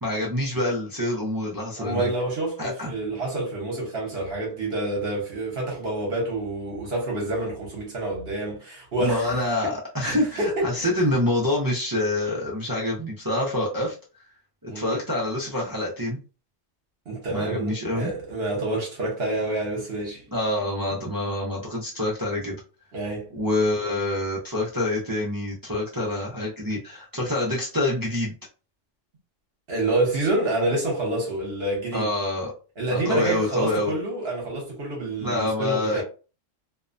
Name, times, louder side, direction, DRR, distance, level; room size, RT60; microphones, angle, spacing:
voice 1, 0.0-2.1 2.6-2.9 9.0-13.9 14.6-16.2 17.3-18.1 20.3-22.6 23.3-28.3 31.9-32.5 32.9-33.9 35.2-36.0, left 1 dB, 35° right, 0.3 m, -26 dB
voice 2, 1.8-9.3 10.0-10.9 14.7-15.0 17.1-20.3 22.9-23.4 29.7-32.1 32.8-36.0, right 2 dB, 55° right, 1.1 m, -28 dB
2.6 x 2.1 x 2.5 m
omnidirectional pair, 1.3 m